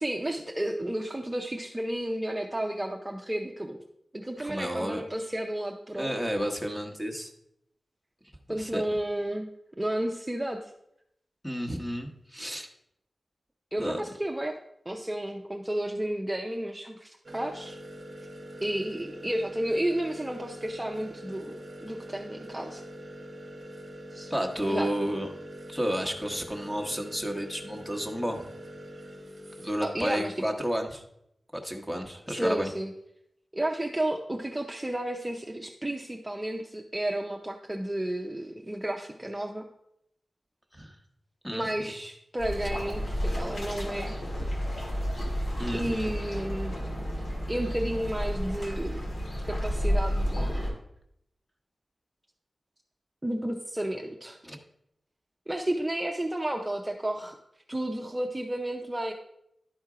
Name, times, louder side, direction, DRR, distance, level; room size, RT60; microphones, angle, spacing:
voice 1, 0.0-3.8 4.1-6.1 8.5-9.5 9.8-10.7 13.7-14.6 14.9-17.8 18.6-22.8 24.1-24.3 24.7-24.9 29.8-30.5 32.3-32.9 33.5-39.7 41.5-44.1 45.7-46.7 47.5-49.1 49.4-50.8 53.2-54.4 55.5-57.3 57.7-59.1, right 1 dB, 15° right, 1 dB, 0.6 m, -32 dB
voice 2, 4.4-5.0 5.9-7.3 8.5-8.8 11.4-12.7 13.8-14.0 24.3-25.3 25.7-28.4 29.6-31.0 31.5-32.7 40.7-40.9 41.4-41.7 45.6-46.1 54.4-54.6, equal, 5° left, 3 dB, 1.1 m, -31 dB
sound 1, 17.2-29.8, equal, 40° right, 0.9 m, -44 dB
sound 2, 42.4-50.7, equal, 75° left, 2.5 m, -31 dB
11.5 x 4.4 x 4.8 m, 0.78 s
wide cardioid pair, 110°, 0 cm